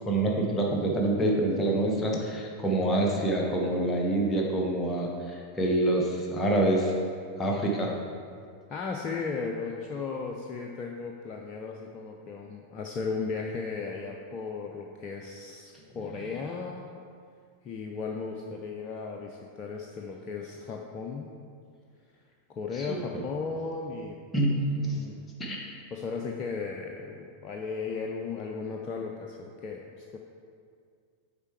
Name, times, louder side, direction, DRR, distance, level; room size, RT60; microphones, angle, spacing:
voice 1, 0.1-6.9 7.4-7.9 22.7-23.2 24.3-25.0 25.4-25.8, right 1 dB, 15° left, -1 dB, 1.1 m, -26 dB
voice 2, 8.7-16.9 17.6-21.3 22.5-24.2 24.8-25.3 25.9-30.2, left 4 dB, 30° left, 0 dB, 0.5 m, -36 dB
6.7 x 4.5 x 4.5 m, 2.2 s
figure-of-eight pair, 90°, 0 cm